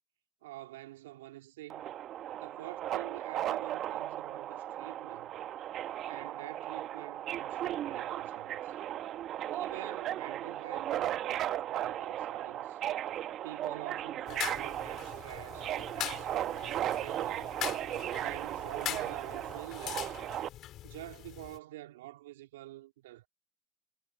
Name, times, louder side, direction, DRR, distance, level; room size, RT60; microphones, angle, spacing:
voice 1, 0.4-2.0 2.4-5.3 6.1-8.8 9.5-12.8 13.4-17.5 18.2-20.2 20.8-23.3, right 16 dB, 85° right, 2.2 m, -47 dB
Subway metro underground, 1.7-20.5, right 12 dB, 50° right, 0.9 m, -36 dB
sound 1, 14.3-21.6, left 13 dB, 55° left, 3.5 m, -42 dB
hypercardioid pair, 85°, 0 cm